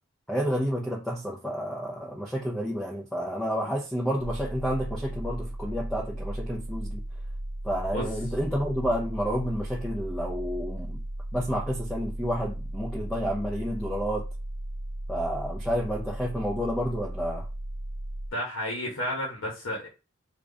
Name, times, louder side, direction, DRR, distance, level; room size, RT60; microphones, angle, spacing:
voice 1, 0.3-7.0 7.6-11.0 11.3-14.3 15.1-17.5, equal, 5° left, 0.6 m, -30 dB
sound 1, 4.2-18.3, right 1 dB, 60° right, 0.6 m, -36 dB
voice 2, 18.3-19.9, left 1 dB, 70° left, 1.0 m, -31 dB
3.8 x 2.5 x 3.2 m
head